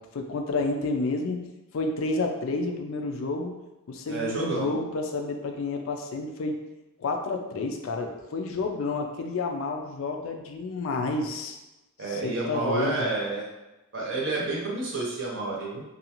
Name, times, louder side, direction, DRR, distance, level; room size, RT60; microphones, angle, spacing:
voice 1, 0.0-1.5 1.7-3.6 3.9-6.6 7.0-11.6 12.0-13.1, left 3 dB, 65° left, 4 dB, 0.4 m, -30 dB
voice 2, 4.1-4.7 12.0-13.5 13.9-15.8, right 3 dB, 55° right, -4 dB, 0.7 m, -29 dB
2.5 x 2.3 x 2.9 m, 1.0 s
head